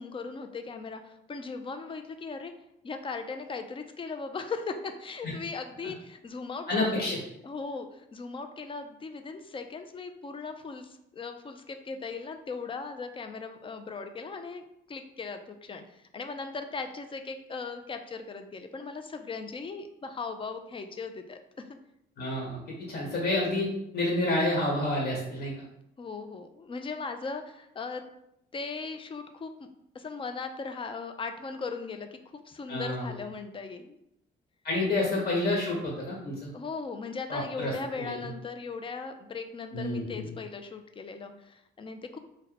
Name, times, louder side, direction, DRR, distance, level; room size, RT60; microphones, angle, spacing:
voice 1, 0.0-2.5 2.8-7.1 7.4-21.7 26.0-28.0 28.5-29.7 29.9-32.1 32.5-34.0 34.8-34.9 36.5-42.2, left 4 dB, 25° left, 7 dB, 0.4 m, -38 dB
voice 2, 6.7-7.2 22.2-23.7 23.9-25.5 32.7-33.1 34.6-36.5 37.3-38.2 39.7-40.3, left 2 dB, 50° left, -3 dB, 1.4 m, -29 dB
2.6 x 2.2 x 4.0 m, 0.80 s
cardioid pair, 90°, 20 cm